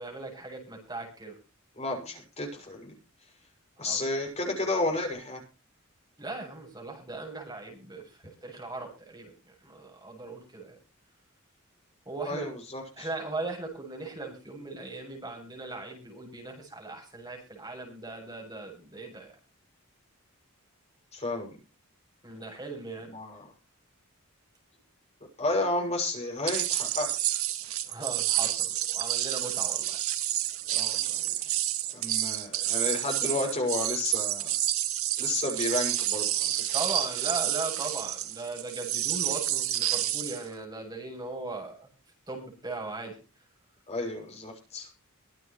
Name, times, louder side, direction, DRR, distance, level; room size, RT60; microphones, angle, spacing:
voice 1, 0.0-1.4 3.8-4.0 6.2-9.3 9.6-10.8 12.1-12.5 13.0-19.3 22.2-23.1 27.9-30.0 36.7-41.9 42.3-43.2, right 2 dB, 20° right, 1 dB, 7.5 m, -38 dB
voice 2, 1.8-3.0 3.8-5.4 12.2-13.1 21.1-21.5 23.1-23.5 25.4-27.4 30.7-31.2 31.9-34.5 35.2-36.8 43.9-44.9, left 2 dB, 30° left, 2 dB, 6.7 m, -32 dB
sound 1, 26.5-40.4, right 13 dB, 85° right, 2.0 m, -29 dB
24.0 x 9.6 x 3.1 m, 0.33 s
head